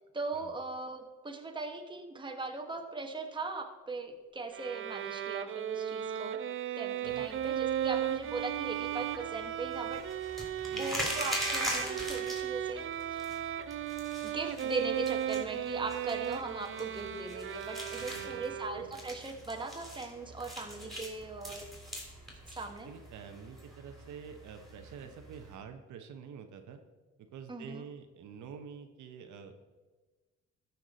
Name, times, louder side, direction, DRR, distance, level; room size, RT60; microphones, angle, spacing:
voice 1, 0.1-6.4 6.8-10.0 10.8-12.8 13.1-13.4 14.2-21.7 22.5-22.9 27.5-27.8, right 3 dB, 15° right, 4 dB, 1.1 m, -39 dB
Bowed string instrument, 4.5-19.0, right 10 dB, 45° right, 0.5 m, -36 dB
sound 1, 7.1-25.6, equal, ahead, 3.3 m, -43 dB
voice 2, 10.7-11.0 18.0-18.5 18.8-18.9 22.8-26.8 27.3-29.6, right 7 dB, 75° right, 6 dB, 0.9 m, -48 dB
13.5 x 5.9 x 4.0 m, 1.3 s
cardioid pair, 90°, 30 cm